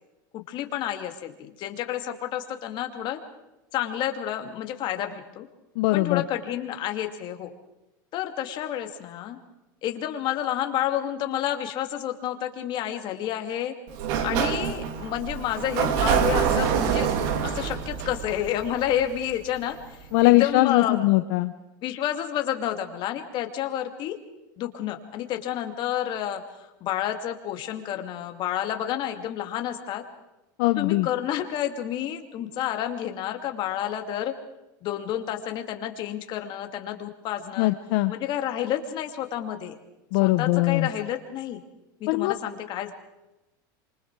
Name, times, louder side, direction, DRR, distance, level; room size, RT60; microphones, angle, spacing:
voice 1, 0.3-3.2 3.7-5.5 5.9-7.5 8.1-9.4 9.8-13.7 14.2-17.1 17.4-21.0 21.8-24.1 24.6-26.4 26.8-30.0 30.8-34.3 34.8-37.7 38.1-39.7 40.2-41.6 42.0-42.9, left 11 dB, 45° left, 6 dB, 2.6 m, -30 dB
voice 2, 5.8-6.2 20.1-21.5 30.6-31.1 37.6-38.1 40.1-40.9 42.1-42.3, left 19 dB, 65° left, 10 dB, 1.0 m, -21 dB
Sliding door, 13.9-19.6, right 8 dB, 65° right, 2.8 m, -26 dB
26.5 x 25.5 x 4.8 m, 0.97 s
supercardioid pair, 140°, 11 cm